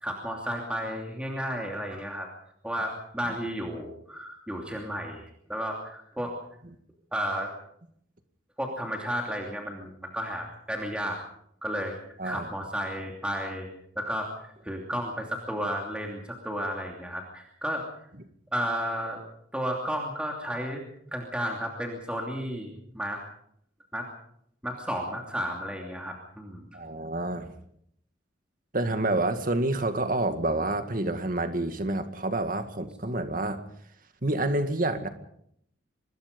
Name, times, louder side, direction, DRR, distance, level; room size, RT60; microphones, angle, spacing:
voice 1, 0.0-2.3 2.6-6.3 7.1-7.5 8.6-11.2 11.6-12.0 12.2-13.7 14.0-14.3 14.6-17.8 18.5-19.2 19.5-20.8 21.1-23.2 23.9-24.1 24.6-26.6, equal, 5° right, 0 dB, 2.8 m, -33 dB
voice 2, 12.2-12.5 14.7-14.8 26.7-27.5 28.7-33.6 34.2-35.1, right 2 dB, 45° right, 8 dB, 2.0 m, -28 dB
25.0 x 20.0 x 5.4 m, 0.71 s
head